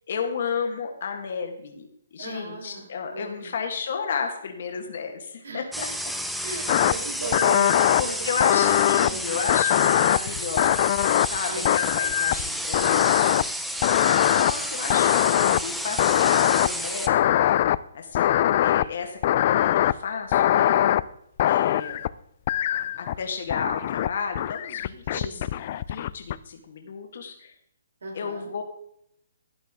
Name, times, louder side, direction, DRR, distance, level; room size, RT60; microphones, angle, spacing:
voice 1, 0.1-1.9 2.1-5.6 8.0-10.9 11.3-17.3 17.9-20.8 21.4-22.0 23.0-25.5 25.9-27.5 28.1-28.6, left 6 dB, 55° left, 4 dB, 1.7 m, -33 dB
voice 2, 2.2-3.5 5.4-5.7 6.4-9.5 11.5-12.0 20.4-21.0 25.1-25.4 28.0-28.5, right 2 dB, 85° right, 0 dB, 4.1 m, -36 dB
sound 1, 5.7-17.1, equal, ahead, 0.6 m, -31 dB
sound 2, 6.7-6.9 7.3-8.0 8.4-9.1 9.5-11.4 11.6-12.5 12.7-13.4 13.8-14.5 14.9-15.6 16.0-16.7 17.1-17.8 18.1-18.8 19.2-19.9 20.3-21.0 21.4-22.1 22.5-23.2 23.5-24.1 24.3-26.3, left 12 dB, 40° left, 0.3 m, -21 dB
12.5 x 10.0 x 3.7 m, 0.75 s
hypercardioid pair, 160°, 0 cm